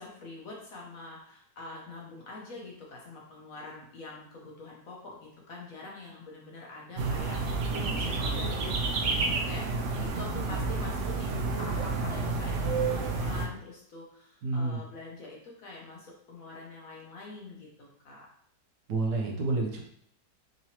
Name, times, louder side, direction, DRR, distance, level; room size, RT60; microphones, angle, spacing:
voice 1, 0.0-18.3, left 2 dB, 60° left, -2 dB, 1.0 m, -45 dB
sound 1, 7.0-13.5, right 3 dB, 85° right, 0.6 m, -30 dB
voice 2, 14.4-14.8 18.9-19.8, right 3 dB, 70° right, 0 dB, 1.2 m, -29 dB
3.8 x 3.0 x 2.8 m, 0.67 s
omnidirectional pair, 1.9 m